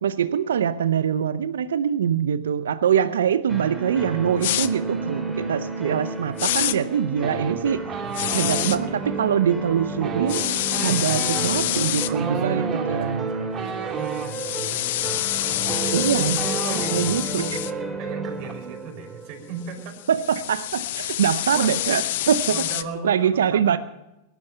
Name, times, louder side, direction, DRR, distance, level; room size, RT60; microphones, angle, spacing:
voice 1, 0.0-7.8 8.3-10.4 10.8-13.3 15.9-17.6 20.1-22.7 23.0-23.8, right 8 dB, 80° right, 13 dB, 0.6 m, -23 dB
sound 1, 3.5-20.2, right 3 dB, 10° right, 3.1 m, -31 dB
sound 2, 4.4-4.7 6.4-6.8 8.1-8.8 10.3-12.1 14.1-17.7 19.8-22.8, left 14 dB, 65° left, 0.7 m, -26 dB
voice 2, 5.1-5.7 8.0-8.6 11.0-11.5 12.1-16.1 16.7-20.0 21.5-21.8 22.5-23.8, right 4 dB, 50° right, 2 dB, 5.4 m, -38 dB
sound 3, 7.2-8.7 9.9-14.3 15.2-15.3 15.6-17.2 17.5-17.8 18.0-18.5, right 6 dB, 30° right, 2.1 m, -33 dB
18.5 x 11.5 x 5.6 m, 0.95 s
hypercardioid pair, 105°, 0 cm